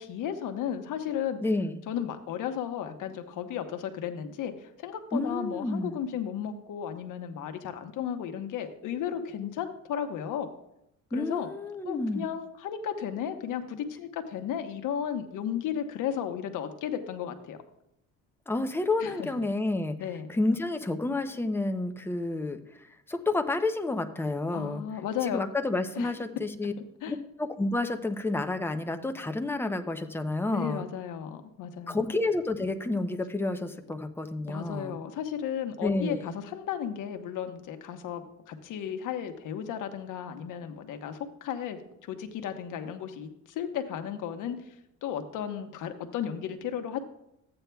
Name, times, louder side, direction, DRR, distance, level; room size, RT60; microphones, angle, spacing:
voice 1, 0.0-1.4 1.9-10.5 11.1-11.5 11.8-17.6 19.0-19.3 20.0-20.3 24.5-25.4 25.9-26.1 27.0-27.1 30.5-32.0 34.4-44.6 45.0-47.0, left 9 dB, 65° left, 7 dB, 1.1 m, -34 dB
voice 2, 1.4-1.8 5.1-6.0 11.1-12.2 18.5-20.0 20.3-24.8 25.2-26.7 27.1-30.9 31.9-35.0 35.8-36.3, left 2 dB, 5° left, 6 dB, 0.5 m, -30 dB
14.0 x 8.8 x 2.3 m, 0.80 s
cardioid pair, 140°, 33 cm